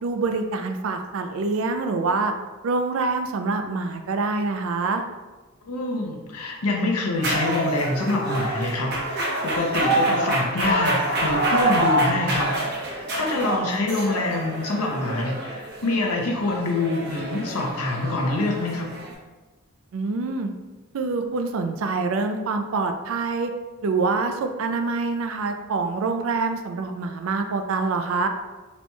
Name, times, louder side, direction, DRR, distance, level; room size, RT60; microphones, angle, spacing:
voice 1, 0.0-2.3 2.6-5.0 19.9-20.5 20.9-23.5 23.8-28.3, right 3 dB, 65° right, 6 dB, 0.4 m, -25 dB
voice 2, 5.7-18.9, left 2 dB, 90° left, 0 dB, 0.7 m, -26 dB
sound 1, 7.2-19.1, right 1 dB, 50° right, 0.7 m, -26 dB
4.2 x 2.9 x 2.2 m, 1.2 s
head